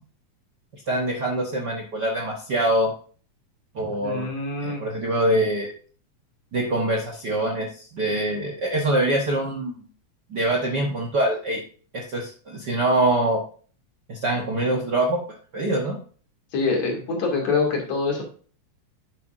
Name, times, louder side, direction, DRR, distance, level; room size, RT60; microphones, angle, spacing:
voice 1, 0.9-2.9 3.7-4.3 4.6-5.7 6.5-9.8 10.3-11.6 11.9-13.4 14.1-15.2 15.5-16.0, right 1 dB, 50° right, 1 dB, 1.3 m, -24 dB
voice 2, 3.8-4.8 16.5-18.2, left 4 dB, 60° left, 0 dB, 3.6 m, -25 dB
10.5 x 7.8 x 2.6 m, 0.41 s
omnidirectional pair, 3.4 m